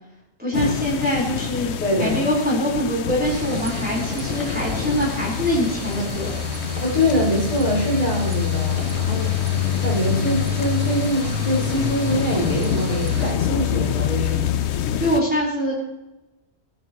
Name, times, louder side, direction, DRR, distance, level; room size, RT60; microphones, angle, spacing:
voice 1, 0.4-1.7 2.0-6.3 15.0-15.8, equal, 10° right, -6 dB, 4.5 m, -23 dB
sound 1, 0.5-15.2, left 10 dB, 85° left, 1.0 m, -26 dB
voice 2, 1.8-2.3 6.8-9.3 9.6-14.6, equal, 45° left, -4 dB, 5.4 m, -24 dB
sound 2, 3.2-13.3, right 4 dB, 35° right, 0.7 m, -34 dB
22.5 x 9.7 x 3.1 m, 0.97 s
omnidirectional pair, 1.1 m